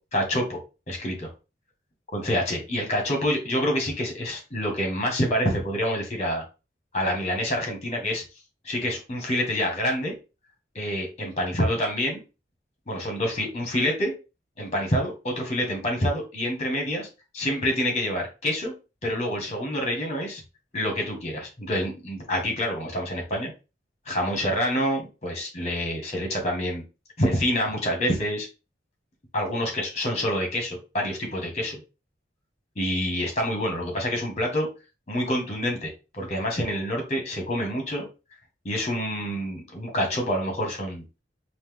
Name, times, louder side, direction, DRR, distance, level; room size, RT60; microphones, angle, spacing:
voice 1, 0.1-0.6 0.9-1.3 2.1-6.4 6.9-8.2 8.6-10.1 10.7-12.2 12.9-14.1 14.6-17.1 17.3-18.7 19.0-20.4 20.7-23.5 24.0-26.8 27.2-28.5 29.3-31.8 32.7-34.7 35.1-38.1 38.6-41.0, equal, 40° left, 1 dB, 1.7 m, -27 dB
4.1 x 2.9 x 3.6 m, 0.29 s
head